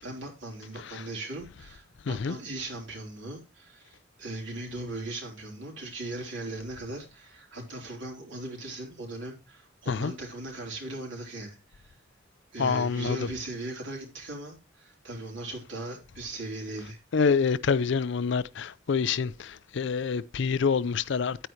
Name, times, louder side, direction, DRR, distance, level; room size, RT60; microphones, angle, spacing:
voice 1, 0.0-12.0 12.5-17.0, right 2 dB, 65° right, 3.9 m, -39 dB
voice 2, 12.6-13.3 17.1-21.4, left 5 dB, 60° left, 0.4 m, -27 dB
9.9 x 9.0 x 3.2 m
head